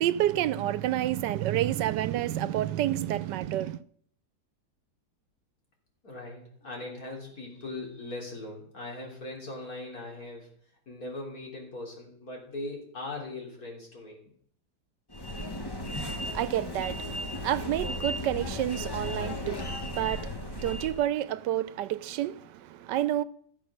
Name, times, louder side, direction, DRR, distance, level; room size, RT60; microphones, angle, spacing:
voice 1, 0.0-3.8 16.0-23.2, right 13 dB, 90° right, 1.3 m, -29 dB
voice 2, 6.0-10.5 10.9-14.2, left 2 dB, 60° left, 4.0 m, -40 dB
sound 1, 15.1-21.1, left 1 dB, 15° left, 0.9 m, -35 dB
14.5 x 7.4 x 6.4 m
omnidirectional pair, 1.8 m